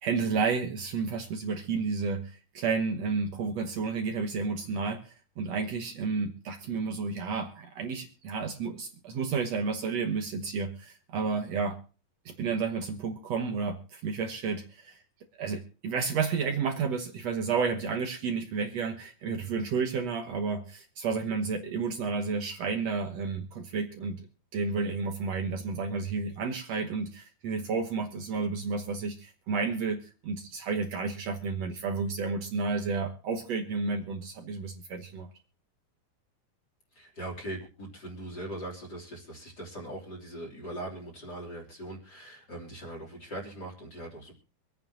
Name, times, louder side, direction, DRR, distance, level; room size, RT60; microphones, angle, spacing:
voice 1, 0.0-11.8 12.3-15.0 15.4-24.3 24.5-30.0 30.2-35.3, right 5 dB, 60° right, 4 dB, 2.2 m, -31 dB
voice 2, 36.9-44.3, right 1 dB, 30° left, -1 dB, 3.7 m, -40 dB
25.5 x 9.3 x 2.8 m, 0.35 s
omnidirectional pair, 3.5 m